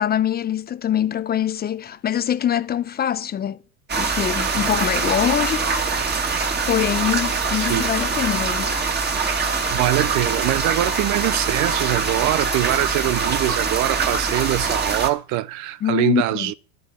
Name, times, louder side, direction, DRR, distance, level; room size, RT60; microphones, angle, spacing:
voice 1, 0.0-3.6 4.0-5.7 6.7-8.7 15.8-16.5, left 10 dB, 20° left, 0.6 m, -23 dB
sound 1, 3.9-15.1, right 4 dB, 20° right, 2.3 m, -23 dB
voice 2, 7.5-7.8 9.7-16.5, right 16 dB, 40° right, 0.6 m, -23 dB
12.0 x 8.0 x 7.0 m
supercardioid pair, 120°, 45 cm